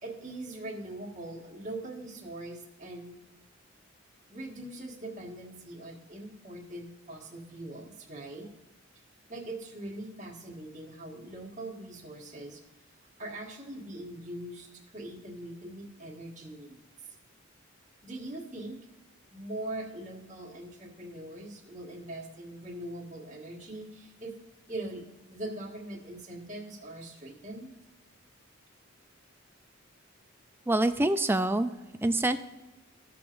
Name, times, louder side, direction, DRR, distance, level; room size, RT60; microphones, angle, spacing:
voice 1, 0.0-3.1 4.3-8.5 9.3-12.6 13.2-16.8 18.0-18.8 19.3-24.4 24.7-27.7, right 1 dB, 35° right, 0 dB, 1.6 m, -41 dB
voice 2, 30.7-31.7 32.0-32.4, right 1 dB, 10° right, 10 dB, 0.3 m, -25 dB
16.0 x 6.7 x 2.6 m, 1.1 s
head